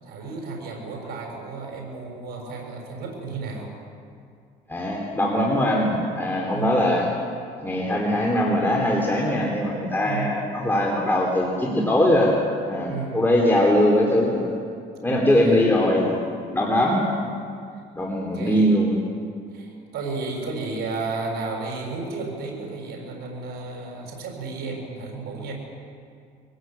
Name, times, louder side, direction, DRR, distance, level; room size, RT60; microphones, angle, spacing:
voice 1, 0.0-3.8 6.5-7.0 10.0-10.4 12.8-13.5 15.0-15.7 18.3-18.8 19.5-25.5, right 3 dB, 70° right, 0 dB, 6.8 m, -33 dB
voice 2, 4.7-7.1 7.6-12.3 12.7-14.5 15.0-16.2 16.5-17.1 17.9-19.0, left 1 dB, 10° left, -2 dB, 3.7 m, -21 dB
24.0 x 18.0 x 9.2 m, 2.3 s
cardioid pair, 110°, 17 cm